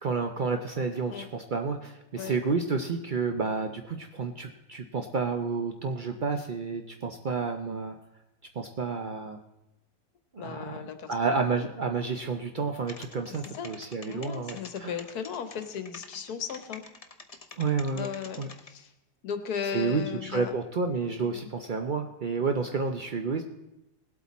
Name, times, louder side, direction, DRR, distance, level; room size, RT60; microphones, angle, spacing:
voice 1, 0.0-7.9 8.6-9.4 10.4-10.8 11.1-14.9 17.6-18.1 18.4-18.5 19.7-23.4, right 4 dB, 80° right, 5 dB, 0.4 m, -30 dB
voice 2, 10.4-11.1 11.6-11.7 13.5-13.7 14.1-16.8 17.9-18.9 19.2-20.5 21.2-21.5 22.4-22.5, left 7 dB, 65° left, 9 dB, 1.5 m, -36 dB
sound 1, 12.8-18.7, left 4 dB, 35° left, 0.6 m, -45 dB
19.0 x 8.2 x 4.1 m, 0.92 s
omnidirectional pair, 1.8 m